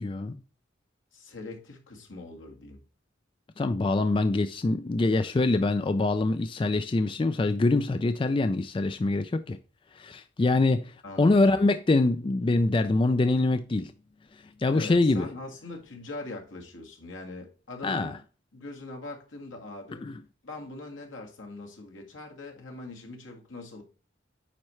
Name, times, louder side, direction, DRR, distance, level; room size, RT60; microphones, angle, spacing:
voice 1, 0.0-0.4 3.6-9.6 10.0-13.9 14.6-15.3 17.8-18.1 20.0-20.2, left 2 dB, 25° left, 0.3 m, -24 dB
voice 2, 1.1-2.8 11.0-11.6 14.7-18.2 18.5-20.1 20.4-23.8, left 2 dB, 80° left, 1.9 m, -42 dB
9.1 x 4.3 x 3.2 m
head